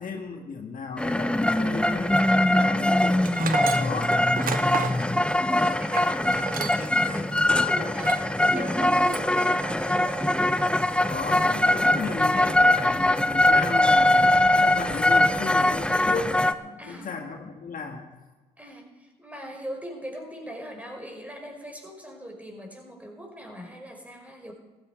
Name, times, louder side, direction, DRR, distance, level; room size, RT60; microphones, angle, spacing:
voice 1, 0.0-3.4 3.7-4.2 11.1-18.1, left 4 dB, 60° left, 2 dB, 2.0 m, -35 dB
sound 1, 1.0-16.5, left 1 dB, 5° left, 0.8 m, -22 dB
Tools, 3.2-7.0 7.3-7.4 7.9-8.3 8.7-9.3, right 7 dB, 60° right, 1.0 m, -33 dB
voice 2, 4.7-10.4 16.8-17.1 18.6-24.5, equal, 10° right, 1 dB, 5.4 m, -39 dB
15.0 x 14.5 x 4.6 m, 1.2 s
supercardioid pair, 50°, 16 cm